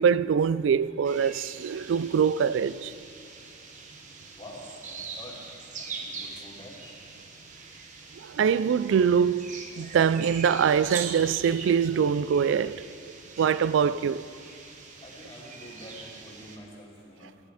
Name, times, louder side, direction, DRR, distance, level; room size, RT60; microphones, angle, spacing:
voice 1, 0.0-2.9 8.2-14.2, right 7 dB, 80° right, 0.3 m, -24 dB
sound 1, 1.0-16.6, right 4 dB, 40° right, 1.1 m, -43 dB
voice 2, 4.3-5.4 5.8-6.8 15.0-17.4, equal, 30° left, 2.8 m, -47 dB
14.5 x 10.5 x 4.9 m
head